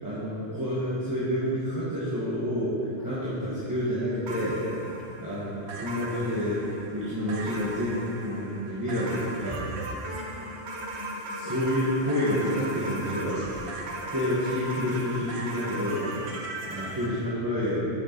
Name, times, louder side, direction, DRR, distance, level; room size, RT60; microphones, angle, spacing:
voice 1, 0.0-4.6 5.2-9.6 11.3-13.6 14.1-16.0 16.7-17.8, equal, 15° right, -11 dB, 1.1 m, -29 dB
sound 1, 4.3-17.1, right 1 dB, 65° right, 1.1 m, -38 dB
voice 2, 10.0-11.7 13.8-14.3 16.1-16.4, left 3 dB, 75° left, -1 dB, 1.2 m, -46 dB
6.3 x 6.2 x 4.3 m, 2.7 s
omnidirectional pair, 1.2 m